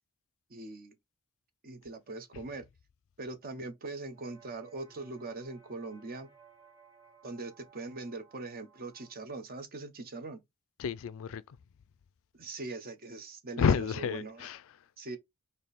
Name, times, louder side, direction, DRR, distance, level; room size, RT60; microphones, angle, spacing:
voice 1, 0.5-0.9 1.6-2.7 3.2-6.3 7.2-10.4 12.3-14.5 15.0-15.2, right 3 dB, 40° right, 0.7 m, -41 dB
sound 1, 4.1-9.1, right 6 dB, 15° right, 1.1 m, -59 dB
voice 2, 10.8-11.6 13.6-14.8, left 6 dB, 65° left, 0.4 m, -30 dB
3.5 x 2.7 x 4.1 m
head